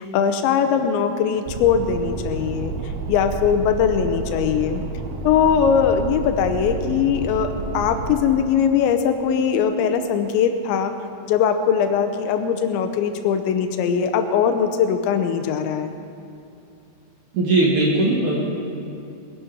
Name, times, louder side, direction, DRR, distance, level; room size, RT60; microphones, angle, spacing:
voice 1, 0.0-4.8 5.2-7.5 7.7-10.9 11.3-15.9, left 7 dB, 85° left, 7 dB, 3.0 m, -20 dB
sound 1, 1.5-8.2, right 3 dB, 70° right, 2.5 m, -30 dB
voice 2, 17.3-18.4, right 2 dB, 55° right, -4 dB, 2.4 m, -18 dB
21.0 x 11.0 x 5.1 m, 2.5 s
omnidirectional pair, 5.3 m